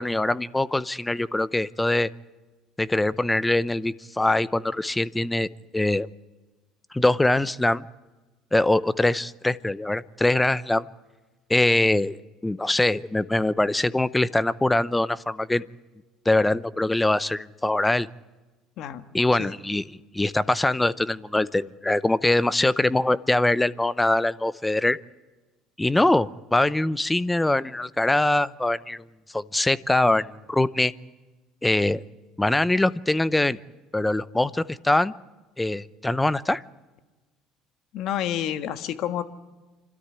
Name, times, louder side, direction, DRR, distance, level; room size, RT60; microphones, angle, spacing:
voice 1, 0.0-2.1 2.8-6.1 6.9-7.8 8.5-10.9 11.5-12.2 12.4-15.6 16.3-18.1 19.1-19.8 20.1-25.0 25.8-29.0 29.3-30.9 31.6-32.0 32.4-33.6 33.9-35.1 35.6-36.6, left 2 dB, 10° left, 18 dB, 0.7 m, -23 dB
voice 2, 37.9-39.2, left 11 dB, 65° left, 10 dB, 1.5 m, -29 dB
26.5 x 13.0 x 9.9 m, 1.2 s
supercardioid pair, 85°, 0 cm